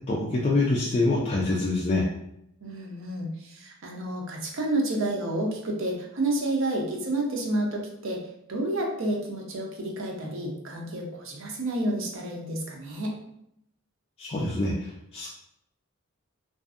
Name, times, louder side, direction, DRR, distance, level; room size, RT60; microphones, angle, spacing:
voice 1, 0.1-2.1 14.2-15.3, left 2 dB, 25° left, -5 dB, 0.3 m, -25 dB
voice 2, 2.6-8.2 8.5-13.2, right 1 dB, 60° right, 0 dB, 0.5 m, -30 dB
2.5 x 2.3 x 2.4 m, 0.77 s
head